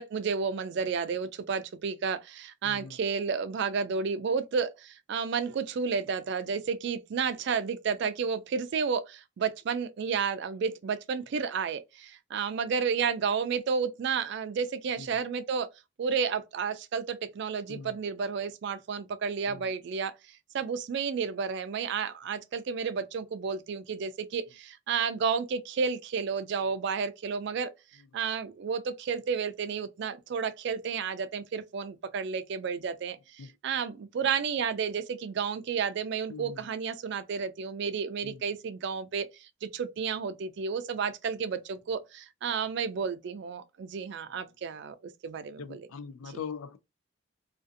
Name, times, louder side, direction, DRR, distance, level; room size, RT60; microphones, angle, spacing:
voice 1, 0.0-15.7 16.0-27.7 28.1-45.0 45.2-45.9, right 6 dB, 55° right, 0.3 m, -31 dB
voice 2, 2.6-3.0 15.0-15.1 17.7-18.0 19.5-19.7 33.4-33.5 36.3-36.6 38.2-38.4 45.6-46.8, left 6 dB, 80° left, 0.4 m, -41 dB
2.5 x 2.4 x 2.5 m
head